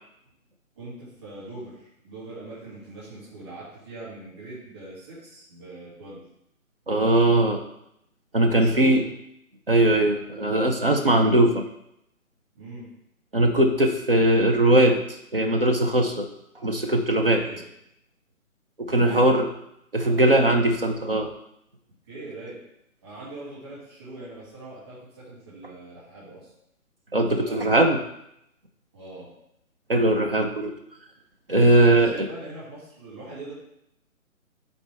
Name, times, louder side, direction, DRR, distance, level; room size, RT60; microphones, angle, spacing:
voice 1, 0.7-6.2 8.5-9.1 12.5-12.9 17.2-17.6 18.8-19.3 20.0-20.5 22.1-22.6 23.0-26.5 27.4-27.7 28.9-29.3 31.5-33.5, right 2 dB, 20° right, -9 dB, 2.8 m, -41 dB
voice 2, 6.9-7.6 8.3-9.0 9.7-11.6 13.3-15.0 15.3-16.3 16.6-17.4 18.9-19.5 19.9-21.3 27.1-28.0 29.9-30.7 31.5-32.3, right 1 dB, 40° right, 4 dB, 0.8 m, -20 dB
11.0 x 4.3 x 3.5 m, 0.78 s
hypercardioid pair, 180°, 42 cm